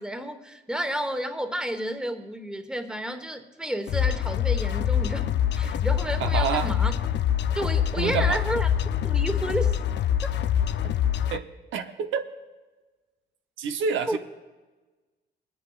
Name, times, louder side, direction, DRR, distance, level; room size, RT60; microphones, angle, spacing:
voice 1, 0.0-5.3 5.6-6.9 7.5-8.7 9.0-9.7 14.1-14.2, right 1 dB, 5° right, 7 dB, 1.2 m, -31 dB
sound 1, 3.9-11.4, left 9 dB, 60° left, 0.5 m, -25 dB
voice 2, 6.2-6.7 8.0-8.4 11.3-12.3 13.6-14.2, right 7 dB, 80° right, 7 dB, 0.8 m, -28 dB
26.5 x 10.5 x 2.4 m, 1.2 s
cardioid pair, 90°, 20 cm